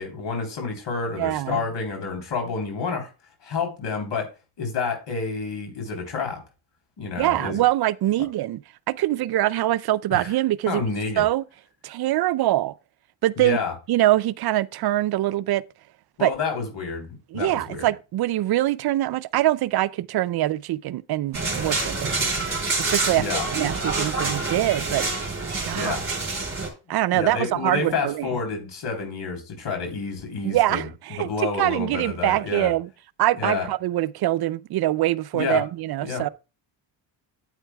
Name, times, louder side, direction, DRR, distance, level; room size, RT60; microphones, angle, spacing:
voice 1, 0.0-3.1 3.4-6.4 7.0-7.6 10.1-10.3 10.7-11.2 13.4-13.7 16.2-17.9 23.1-23.4 25.8-26.0 27.1-30.9 31.2-32.7 33.4-33.7 35.3-35.6 36.0-36.3, left 5 dB, 60° left, 3.6 m, -29 dB
voice 2, 1.2-1.6 7.2-8.6 8.9-10.8 11.2-11.4 11.8-12.7 13.2-13.6 13.9-15.6 16.2-16.3 17.3-22.1 22.8-25.0 25.6-26.0 26.9-28.3 30.4-32.9 33.2-36.3, right 15 dB, 55° right, 0.5 m, -23 dB
sound 1, 21.3-26.7, right 3 dB, 30° right, 3.8 m, -27 dB
9.0 x 8.7 x 2.3 m
cardioid pair, 80°, 47 cm